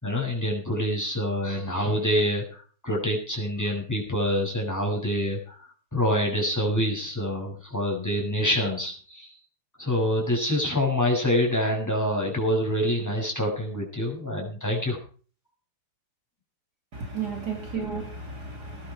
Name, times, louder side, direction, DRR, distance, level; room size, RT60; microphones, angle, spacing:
voice 1, 0.0-9.3 9.8-15.0, equal, 5° left, 7.4 m, -26 dB
voice 2, 16.9-18.9, right 5 dB, 45° right, 3.2 m, -33 dB
20.0 x 11.5 x 4.9 m
omnidirectional pair, 2.4 m